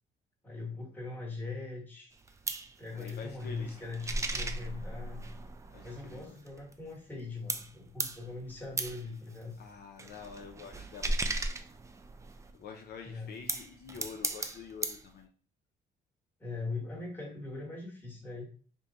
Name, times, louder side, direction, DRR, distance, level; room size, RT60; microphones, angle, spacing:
voice 1, 0.4-2.1 2.8-5.2 5.8-9.6 13.0-13.4 16.4-18.4, left 3 dB, 10° left, -2 dB, 1.3 m, -41 dB
sound 1, 2.1-7.2 7.5-12.5 13.2-15.1, right 2 dB, 15° right, 0.3 m, -37 dB
voice 2, 2.9-3.8 5.7-6.4 9.6-11.4 12.5-15.3, left 6 dB, 60° left, 2 dB, 0.6 m, -47 dB
3.5 x 2.2 x 3.9 m, 0.40 s
cardioid pair, 135°, 19 cm